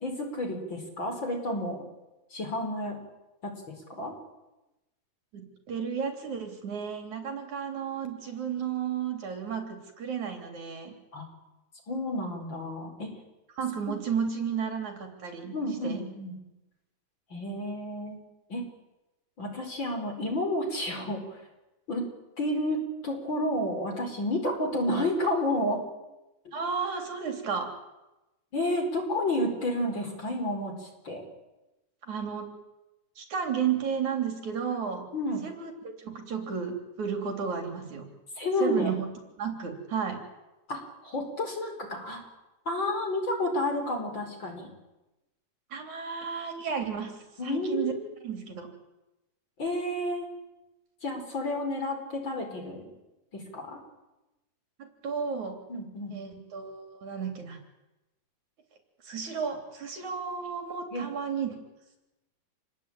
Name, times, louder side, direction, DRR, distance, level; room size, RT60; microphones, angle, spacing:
voice 1, 0.0-1.9 2.3-3.0 3.4-4.1 11.1-11.3 11.9-13.1 15.5-16.3 17.3-18.2 18.5-18.6 19.4-21.4 21.9-22.1 22.4-25.8 28.5-31.2 35.1-35.4 38.4-38.9 40.7-42.2 42.7-44.7 47.4-48.0 49.6-50.3 51.0-52.9 53.3-53.8 55.7-56.1 60.9-61.1, left 1 dB, 30° left, 4 dB, 5.4 m, -31 dB
voice 2, 5.3-10.9 13.6-15.6 15.8-16.0 26.5-27.7 32.0-32.5 33.2-35.1 35.4-38.1 38.6-40.2 45.7-47.1 47.4-47.9 48.2-48.7 54.8-55.6 56.1-57.6 59.0-61.6, right 6 dB, 55° right, 5 dB, 4.6 m, -33 dB
28.0 x 20.5 x 9.1 m, 1.0 s
omnidirectional pair, 4.0 m